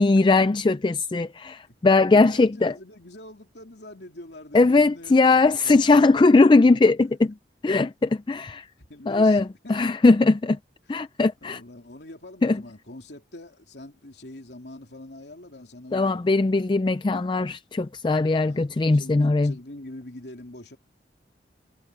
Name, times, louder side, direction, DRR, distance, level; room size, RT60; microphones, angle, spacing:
voice 1, 0.0-2.7 4.5-7.1 7.6-8.6 9.1-10.6 10.9-11.6 12.4-12.6 15.9-19.5, left 3 dB, 25° left, 0.3 m, -19 dB
voice 2, 2.1-7.0 8.9-9.8 11.0-16.2 17.1-17.2 18.4-20.8, left 1 dB, 65° left, 3.1 m, -44 dB
head